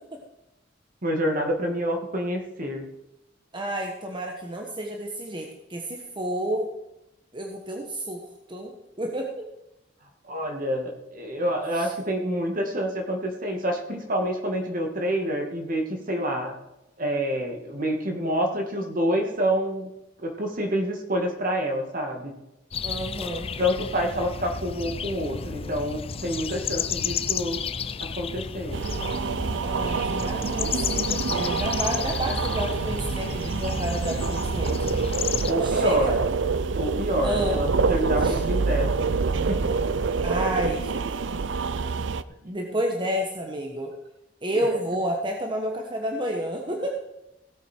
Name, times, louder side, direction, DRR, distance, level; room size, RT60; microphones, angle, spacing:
voice 1, 1.0-2.9 10.3-16.5 17.0-19.9 20.2-22.3 23.6-27.6 28.0-28.8 35.5-36.2 36.8-38.9 39.5-39.6 42.4-42.6, equal, 50° right, 3 dB, 2.1 m, -27 dB
voice 2, 3.5-6.7 7.3-8.2 8.5-8.7 9.0-9.5 11.7-11.9 22.8-23.5 29.6-34.7 35.6-36.1 37.2-37.6 38.2-38.4 40.2-40.9 41.3-41.4 42.4-43.9 44.4-47.0, right 1 dB, 25° right, 1 dB, 1.3 m, -30 dB
sound 1, 22.7-35.5, left 6 dB, 30° left, 0.5 m, -32 dB
sound 2, 28.7-42.2, right 4 dB, 75° right, 0.5 m, -26 dB
16.5 x 8.3 x 4.5 m, 0.90 s
head